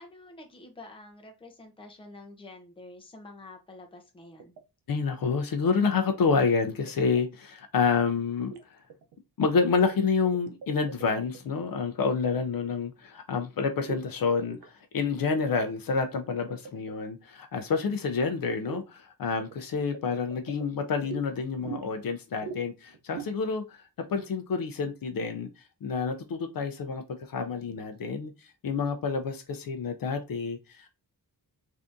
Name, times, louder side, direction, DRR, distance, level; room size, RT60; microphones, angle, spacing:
voice 1, 0.0-4.5, left 2 dB, 15° left, 0.5 m, -48 dB
sound 1, 4.4-4.6 6.1-6.4 6.9-7.2 8.4-8.6 8.9-9.6 9.9-11.5 13.8-14.0 14.4-14.7 15.0-15.1 15.3-17.0 18.6-18.9 19.4-21.2 21.6-22.1 22.4-22.6 22.9-23.3, right 6 dB, 85° right, 0.6 m, -42 dB
voice 2, 4.9-8.8 9.4-23.8 24.1-25.5 25.8-30.9, left 5 dB, 60° left, 0.5 m, -28 dB
3.4 x 2.6 x 2.5 m
wide cardioid pair, 160°, 39 cm